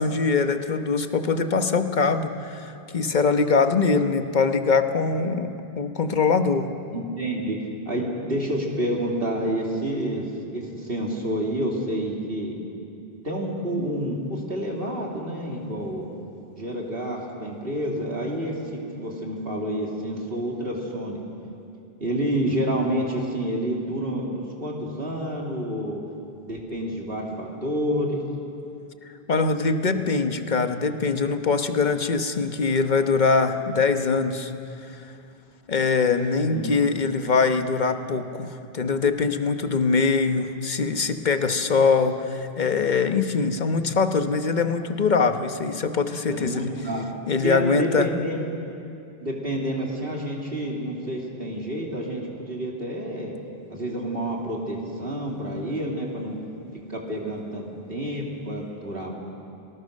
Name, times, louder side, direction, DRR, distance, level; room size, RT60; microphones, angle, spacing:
voice 1, 0.0-6.8 29.3-34.5 34.9-35.1 35.7-46.8 47.3-48.1, left 4 dB, 50° left, 8 dB, 1.2 m, -23 dB
voice 2, 6.9-12.6 13.2-16.1 16.6-18.6 18.9-21.2 22.0-26.0 26.4-28.2 36.5-36.8 46.3-47.1 47.4-48.4 49.2-53.3 53.7-56.4 56.9-59.1, right 1 dB, 70° right, -1 dB, 3.2 m, -29 dB
30.0 x 20.0 x 6.5 m, 2.6 s
omnidirectional pair, 1.0 m